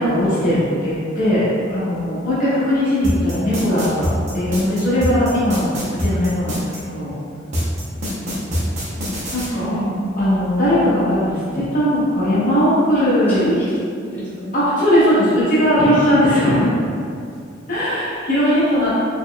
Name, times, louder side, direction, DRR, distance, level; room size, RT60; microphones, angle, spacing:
voice 1, 0.0-4.1 4.3-7.1 9.3-9.8 10.2-13.5 14.5-16.7 17.7-18.9, equal, 45° left, -10 dB, 1.0 m, -18 dB
sound 1, 3.0-6.8 7.5-9.5, equal, 40° right, 0.7 m, -23 dB
voice 2, 9.5-9.9 12.9-14.5 15.9-16.1 18.4-18.9, right 1 dB, 10° left, -13 dB, 1.1 m, -27 dB
4.2 x 3.0 x 2.2 m, 2.3 s
head